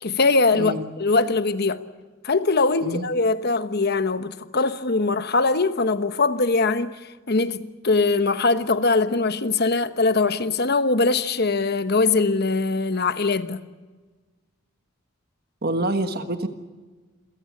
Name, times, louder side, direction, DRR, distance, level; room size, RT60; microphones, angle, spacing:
voice 1, 0.0-1.8 2.2-6.9 7.3-13.6, left 3 dB, 50° left, 1.1 m, -22 dB
voice 2, 0.5-0.8 2.8-3.1 15.6-16.5, right 2 dB, 50° right, 1.5 m, -26 dB
27.5 x 17.0 x 8.4 m
head